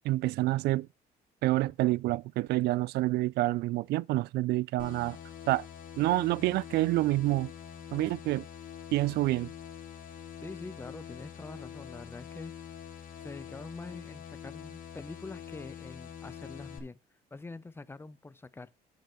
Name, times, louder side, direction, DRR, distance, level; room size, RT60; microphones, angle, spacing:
voice 1, 0.0-0.9 1.4-5.2 5.5-5.7 6.0-7.5 7.9-8.4 8.9-9.5, right 18 dB, 75° right, 0.4 m, -28 dB
sound 1, 4.8-16.8, left 9 dB, 55° left, 2.9 m, -45 dB
voice 2, 10.4-12.5 13.2-17.0 17.3-18.7, left 3 dB, 15° left, 0.7 m, -45 dB
8.1 x 7.8 x 4.4 m
cardioid pair, 110°, 17 cm